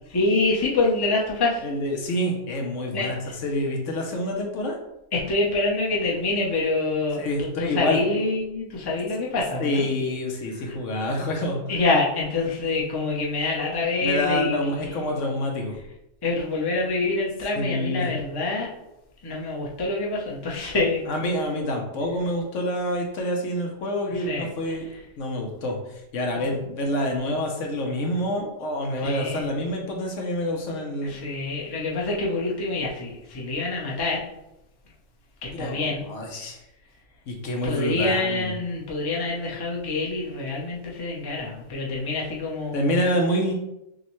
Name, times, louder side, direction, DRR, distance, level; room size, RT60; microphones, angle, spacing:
voice 1, 0.1-1.7 2.9-3.3 5.1-9.9 10.7-10.8 11.7-14.8 16.2-18.7 19.2-21.0 24.1-24.7 26.4-26.6 29.0-29.4 31.0-34.2 35.4-36.0 37.6-43.0, left 2 dB, 25° left, -3 dB, 0.6 m, -26 dB
voice 2, 1.6-4.8 7.2-8.0 9.6-11.6 14.0-15.8 17.6-18.1 21.1-24.9 25.2-31.2 35.6-36.6 37.3-38.5 42.7-43.5, left 1 dB, 70° left, 1 dB, 1.1 m, -27 dB
6.3 x 2.1 x 3.0 m, 0.86 s
omnidirectional pair, 1.3 m